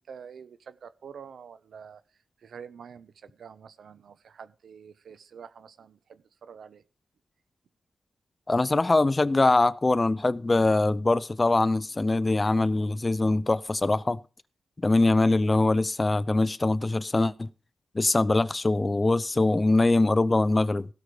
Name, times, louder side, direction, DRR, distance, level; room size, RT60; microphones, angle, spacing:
voice 1, 0.1-2.0 2.4-6.8 15.4-15.6, right 7 dB, 70° right, 1.0 m, -47 dB
voice 2, 8.5-14.2 14.8-17.5 17.9-20.9, left 2 dB, 20° left, 0.5 m, -23 dB
16.5 x 6.5 x 4.9 m
wide cardioid pair, 170°, 0 cm